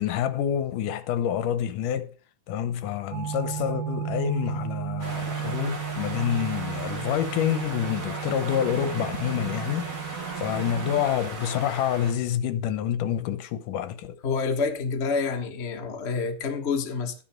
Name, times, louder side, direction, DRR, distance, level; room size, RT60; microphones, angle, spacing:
voice 1, 0.0-2.1 2.5-14.2, left 10 dB, 80° left, 2.5 m, -28 dB
sound 1, 3.1-11.0, right 9 dB, 55° right, 2.4 m, -34 dB
sound 2, 5.0-12.1, right 2 dB, 40° right, 3.6 m, -37 dB
voice 2, 14.2-17.1, left 5 dB, 55° left, 0.7 m, -28 dB
12.5 x 9.7 x 4.5 m
omnidirectional pair, 3.7 m